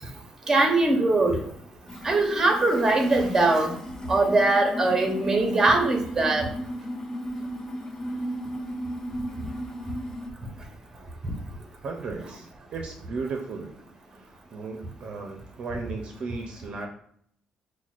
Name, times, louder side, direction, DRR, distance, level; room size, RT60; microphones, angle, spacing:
voice 1, 0.5-1.4 2.0-3.8 4.1-6.5, right 2 dB, 20° right, 3 dB, 0.7 m, -21 dB
sound 1, 1.9-10.3, equal, 25° left, 0.5 m, -35 dB
voice 2, 11.8-13.8 14.2-16.9, right 4 dB, 50° right, 2 dB, 0.5 m, -35 dB
5.8 x 2.1 x 2.4 m, 0.65 s
cardioid pair, 130°, 2 cm